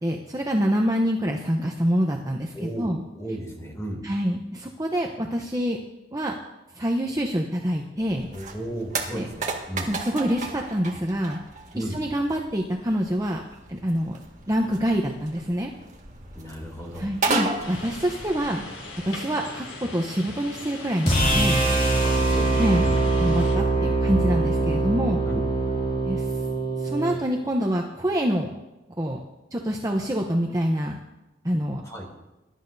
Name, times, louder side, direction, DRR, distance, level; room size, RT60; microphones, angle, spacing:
voice 1, 0.0-3.0 4.0-5.8 6.1-6.3 6.7-8.3 9.1-9.3 9.8-11.4 11.7-13.4 13.7-14.2 14.5-15.7 17.0-18.6 19.0-21.6 22.6-22.8 23.2-25.2 26.0-26.3 26.8-28.5 29.0-29.2 29.5-31.0 31.4-31.8, equal, 15° right, 1 dB, 0.8 m, -26 dB
voice 2, 2.5-4.0 8.3-9.9 11.7-12.0 16.3-17.1 22.0-22.5 22.8-23.0 25.3-25.4 31.8-32.0, right 1 dB, 15° left, -1 dB, 3.0 m, -34 dB
sound 1, 8.0-19.1, right 3 dB, 35° right, 1.8 m, -34 dB
sound 2, 17.6-23.5, left 2 dB, 75° left, 3.8 m, -40 dB
sound 3, 21.1-27.2, right 2 dB, 30° left, 2.8 m, -23 dB
22.0 x 11.5 x 2.7 m, 1.0 s
head